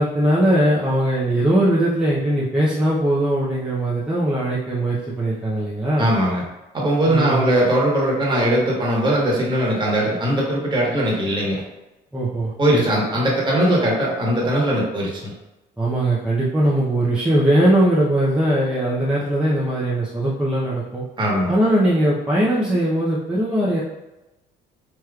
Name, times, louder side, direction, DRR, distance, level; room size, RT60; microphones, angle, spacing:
voice 1, 0.0-6.1 7.1-7.5 12.1-12.5 15.8-21.0 21.5-23.8, right 1 dB, 5° right, -7 dB, 0.7 m, -20 dB
voice 2, 6.0-6.4 6.7-11.6 12.6-15.3 21.2-21.5, right 1 dB, 25° right, -4 dB, 1.4 m, -20 dB
4.8 x 3.0 x 2.4 m, 1.0 s
cardioid pair, 110°, 17 cm